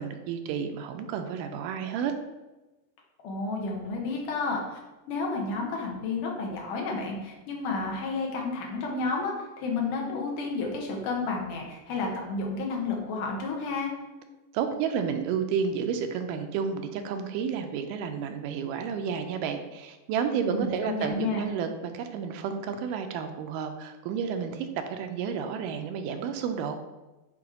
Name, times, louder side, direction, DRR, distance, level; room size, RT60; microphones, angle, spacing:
voice 1, 0.0-2.1 14.5-26.8, right 7 dB, 85° right, 6 dB, 2.1 m, -31 dB
voice 2, 3.2-4.8 5.1-13.9 20.5-21.4, left 3 dB, 75° left, 0 dB, 2.6 m, -31 dB
7.7 x 3.2 x 4.9 m, 1.1 s
omnidirectional pair, 3.8 m